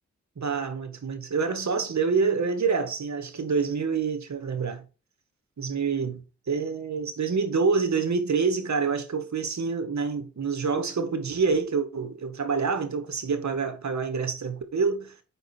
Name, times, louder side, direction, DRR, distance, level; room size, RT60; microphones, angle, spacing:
voice 1, 0.4-4.9 5.6-15.1, right 5 dB, 75° right, 1.9 m, -27 dB
7.8 x 5.4 x 4.5 m
cardioid pair, 55°, 29 cm